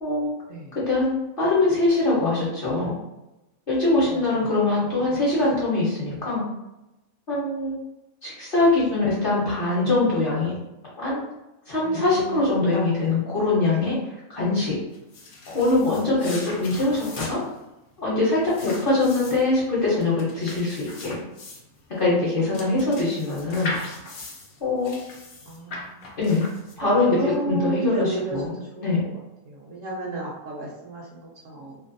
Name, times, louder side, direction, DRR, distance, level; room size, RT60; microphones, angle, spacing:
voice 1, 0.9-2.9 3.7-6.4 7.3-7.8 8.2-10.5 11.0-11.2 11.7-14.0 14.3-14.8 15.5-17.4 18.0-21.2 21.9-23.7 24.6-24.9 26.2-26.4 26.8-28.5 28.8-29.0, left 2 dB, 50° left, -7 dB, 0.8 m, -23 dB
voice 2, 4.1-4.4 4.8-5.2 11.8-12.3 22.4-23.3 25.5-26.2 26.8-29.2 29.5-31.8, right 1 dB, 75° right, -3 dB, 0.9 m, -33 dB
sound 1, 14.9-27.0, left 2 dB, 70° left, 0.5 m, -39 dB
2.5 x 2.2 x 2.5 m, 0.94 s
omnidirectional pair, 1.4 m